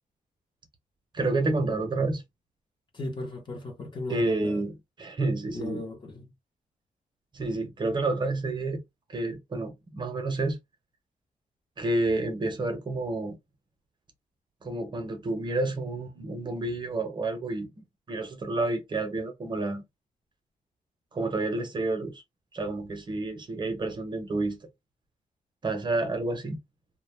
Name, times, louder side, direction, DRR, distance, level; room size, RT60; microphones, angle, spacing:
voice 1, 1.1-2.2 4.1-5.8 7.3-8.8 9.1-10.6 11.8-13.4 14.6-19.8 21.1-22.2 22.5-24.6 25.6-26.6, right 2 dB, 30° right, 0.7 m, -29 dB
voice 2, 2.9-4.6 5.5-6.3, left 2 dB, 35° left, 0.7 m, -37 dB
2.1 x 2.0 x 3.0 m
wide cardioid pair, 140°, 14 cm